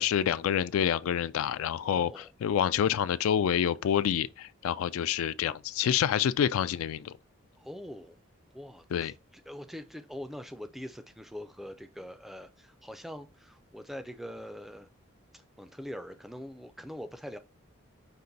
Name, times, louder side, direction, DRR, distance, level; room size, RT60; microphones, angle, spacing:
voice 1, 0.0-7.1 8.9-9.1, left 9 dB, 85° left, 0.3 m, -28 dB
voice 2, 1.9-2.2 7.6-8.2 8.5-14.9 15.3-17.4, equal, ahead, 0.3 m, -43 dB
5.3 x 2.5 x 3.9 m
head